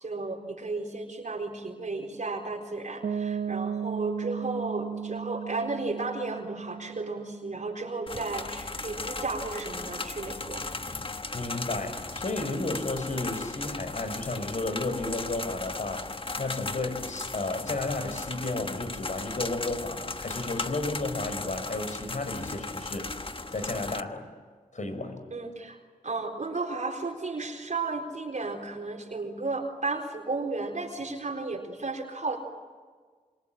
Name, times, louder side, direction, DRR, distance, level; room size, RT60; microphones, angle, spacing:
voice 1, 0.0-10.6 25.3-25.8 26.0-32.4, right 3 dB, 65° right, -1 dB, 4.2 m, -33 dB
Piano, 3.0-8.7, right 7 dB, 85° right, 0.8 m, -36 dB
sound 1, 8.1-24.0, left 3 dB, 40° left, 1.3 m, -37 dB
voice 2, 11.3-16.1 16.4-23.1 23.5-24.3 24.7-25.2, left 2 dB, 60° left, 8 dB, 5.5 m, -32 dB
27.0 x 24.0 x 9.0 m, 1.5 s
cardioid pair, 50°, 14 cm